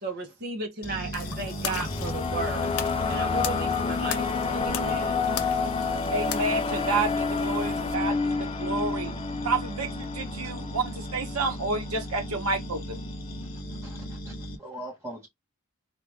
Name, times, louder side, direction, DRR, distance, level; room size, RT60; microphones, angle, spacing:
voice 1, 0.0-2.8 3.1-5.2, right 4 dB, 45° right, 1.2 m, -35 dB
sound 1, 0.8-14.6, equal, 40° left, 1.0 m, -37 dB
sound 2, 1.1-7.9, left 8 dB, 70° left, 0.6 m, -39 dB
sound 3, 1.3-11.5, left 4 dB, 25° left, 0.4 m, -29 dB
voice 2, 6.1-9.2 9.4-13.0, right 3 dB, 75° right, 1.0 m, -30 dB
voice 3, 13.8-14.3 14.6-15.3, right 1 dB, 10° right, 2.0 m, -41 dB
3.3 x 2.6 x 3.4 m
head